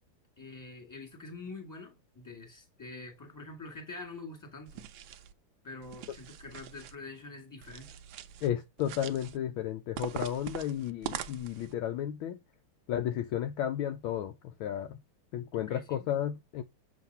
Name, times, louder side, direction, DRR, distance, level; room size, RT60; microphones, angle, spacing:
voice 1, 0.4-4.8 5.6-7.9 15.5-16.1, left 3 dB, 10° left, 1.9 m, -45 dB
sound 1, 4.7-5.3 5.8-7.0 7.6-8.5 8.8-9.4 10.0-11.7, right 10 dB, 70° right, 1.3 m, -42 dB
voice 2, 8.4-12.4 12.9-15.0 15.3-16.6, left 10 dB, 75° left, 1.3 m, -33 dB
7.3 x 3.2 x 5.5 m
omnidirectional pair, 2.4 m